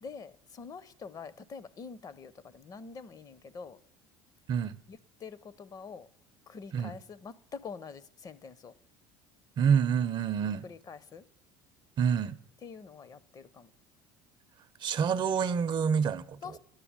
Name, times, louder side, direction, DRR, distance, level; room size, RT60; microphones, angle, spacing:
voice 1, 0.0-3.8 4.9-6.1 6.5-8.7 10.6-11.2 12.6-13.7 16.4-16.6, left 5 dB, 35° left, 0.6 m, -45 dB
voice 2, 9.6-10.6 12.0-12.4 14.8-16.4, right 7 dB, 45° right, 0.6 m, -27 dB
10.5 x 6.8 x 8.7 m
supercardioid pair, 95°, 11 cm